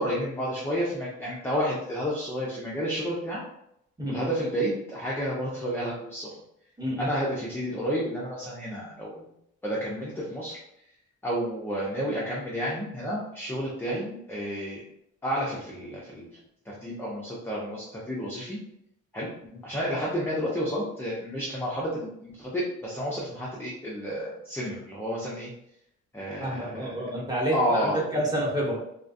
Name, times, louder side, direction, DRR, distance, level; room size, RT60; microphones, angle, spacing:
voice 1, 0.0-3.4 4.0-6.3 7.0-9.3 9.6-10.6 11.2-14.8 15.2-16.3 16.7-18.6 19.1-19.3 19.6-25.5 26.1-27.1 27.5-28.0, equal, 10° left, -6 dB, 0.5 m, -31 dB
voice 2, 4.0-4.3 6.8-7.1 19.5-19.6 26.4-28.8, right 1 dB, 15° right, -5 dB, 1.0 m, -29 dB
2.4 x 2.2 x 2.6 m, 0.76 s
cardioid pair, 90°, 30 cm